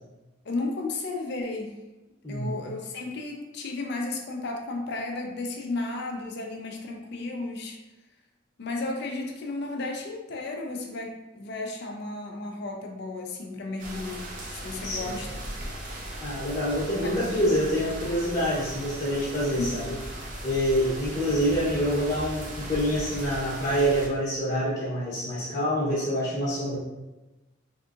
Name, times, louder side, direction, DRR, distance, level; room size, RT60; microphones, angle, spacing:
voice 1, 0.4-1.8 2.3-7.8 8.6-15.4 17.0-17.3 19.6-19.9, left 2 dB, 55° left, 1 dB, 0.5 m, -34 dB
sound 1, 13.8-24.1, right 1 dB, 40° right, 0.6 m, -38 dB
voice 2, 14.8-15.2 16.2-20.0 20.4-26.8, equal, 30° left, -9 dB, 0.8 m, -26 dB
3.5 x 2.7 x 2.4 m, 1.1 s
head